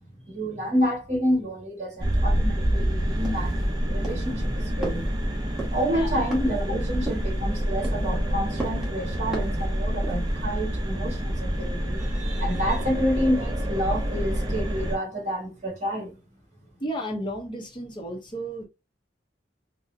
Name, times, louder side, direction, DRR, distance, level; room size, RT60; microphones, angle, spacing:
voice 1, 0.3-3.6 3.9-5.1 5.7-16.1, equal, 40° right, 1.5 m, -29 dB
sound 1, 2.0-15.0, equal, 25° right, 0.6 m, -27 dB
sound 2, 3.2-3.7 4.0-4.3 4.8-5.1 5.6-5.8 6.3-6.6 7.1-7.4 7.8-8.1 8.6-8.9 9.3-9.6 10.0-10.4, right 2 dB, 5° right, 1.1 m, -35 dB
voice 2, 16.8-18.7, right 1 dB, 25° left, 0.6 m, -33 dB
4.0 x 2.1 x 2.5 m
head